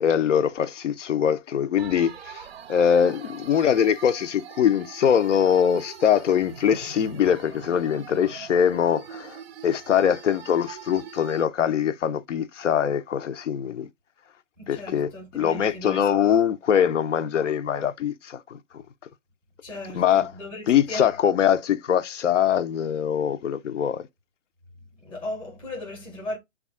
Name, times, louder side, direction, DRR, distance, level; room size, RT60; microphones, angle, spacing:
voice 1, 0.0-13.9 14.7-18.6 19.9-20.3 20.7-24.0, left 8 dB, 80° left, 0.5 m, -23 dB
sound 1, 1.8-11.5, right 8 dB, 55° right, 0.5 m, -43 dB
voice 2, 14.6-16.0 19.6-21.1 25.0-26.4, left 1 dB, 5° left, 0.6 m, -36 dB
3.3 x 2.3 x 3.5 m
hypercardioid pair, 145°, 37 cm